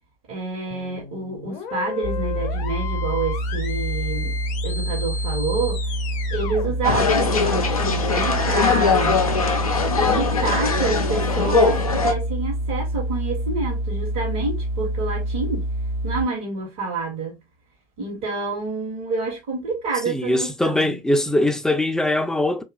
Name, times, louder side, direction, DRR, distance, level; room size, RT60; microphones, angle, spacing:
voice 1, 0.3-4.4 4.6-5.8 6.3-9.2 10.0-15.7 16.0-17.4 18.0-21.0, right 3 dB, 60° right, 1.0 m, -28 dB
sound 1, 0.7-7.8, left 6 dB, 45° left, 0.7 m, -35 dB
sound 2, 2.0-16.2, right 1 dB, 75° right, 0.7 m, -27 dB
sound 3, 6.8-12.1, left 4 dB, 90° left, 0.4 m, -21 dB
voice 2, 20.1-22.6, left 1 dB, 5° left, 0.4 m, -21 dB
2.9 x 2.4 x 2.3 m
figure-of-eight pair, 65°, 18 cm